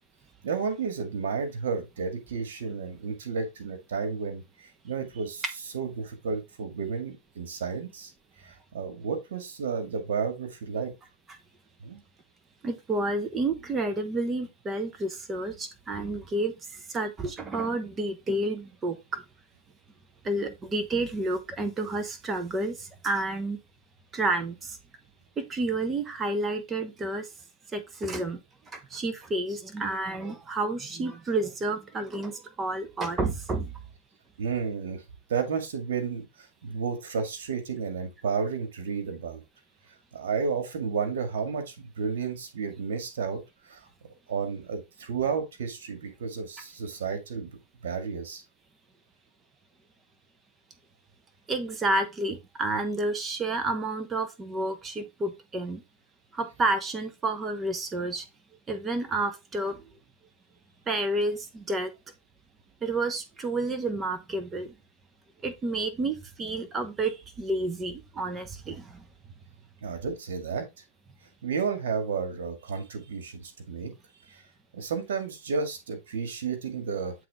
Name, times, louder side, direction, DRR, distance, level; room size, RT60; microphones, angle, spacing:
voice 1, 0.4-5.4 5.7-8.1 8.4-10.9 11.8-12.0 34.4-35.0 35.3-39.4 40.1-43.4 43.7-43.8 44.3-48.4 69.8-70.7 71.4-73.9 74.3-74.4 74.7-77.1, right 5 dB, 80° right, 2.0 m, -32 dB
voice 2, 12.6-19.2 20.2-23.6 24.1-24.8 25.4-27.3 27.7-28.4 28.7-33.7 51.5-55.8 56.3-58.3 58.7-59.9 60.9-61.9 62.8-64.7 65.4-69.0, right 2 dB, 20° right, 1.0 m, -30 dB
7.6 x 3.9 x 3.6 m
hypercardioid pair, 130°, 0 cm